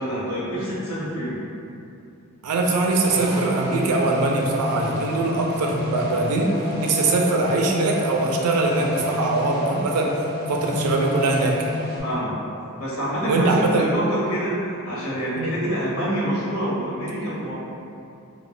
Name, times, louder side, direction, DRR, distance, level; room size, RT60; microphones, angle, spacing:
voice 1, 0.0-1.4 12.0-12.4 12.8-14.6 14.8-17.5, equal, 80° left, -7 dB, 0.9 m, -26 dB
voice 2, 2.4-10.1 10.5-11.6 13.2-13.9 15.4-15.5, right 3 dB, 85° right, 0 dB, 0.4 m, -22 dB
sound 1, 3.0-12.0, left 2 dB, 30° right, 0.7 m, -29 dB
2.3 x 2.1 x 3.6 m, 2.6 s
head